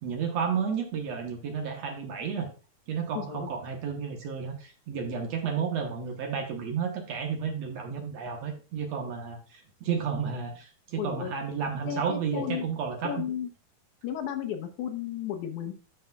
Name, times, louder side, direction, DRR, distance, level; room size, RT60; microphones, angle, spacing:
voice 1, 0.0-2.5 2.9-13.1, right 6 dB, 65° right, 3 dB, 2.0 m, -32 dB
voice 2, 3.1-3.5 11.0-11.3 11.9-12.7 13.0-13.5 14.0-15.7, left 9 dB, 75° left, 5 dB, 2.2 m, -33 dB
12.0 x 5.6 x 2.3 m, 0.36 s
omnidirectional pair, 3.7 m